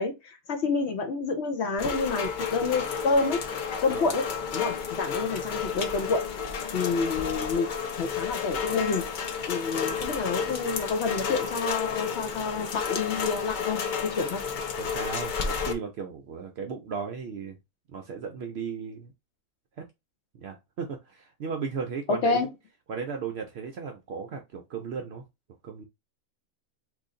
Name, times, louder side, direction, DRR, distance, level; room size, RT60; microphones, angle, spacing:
voice 1, 0.0-3.4 3.8-4.2 4.5-6.2 6.7-7.7 8.0-14.4 22.1-22.5, left 4 dB, 60° left, 0.7 m, -28 dB
Rain, 1.8-15.7, left 6 dB, 85° left, 0.4 m, -31 dB
voice 2, 14.8-17.6 17.9-19.1 19.8-19.9 20.3-22.5 22.9-25.2 25.6-25.8, right 5 dB, 65° right, 0.6 m, -36 dB
3.1 x 2.6 x 3.6 m
omnidirectional pair, 1.5 m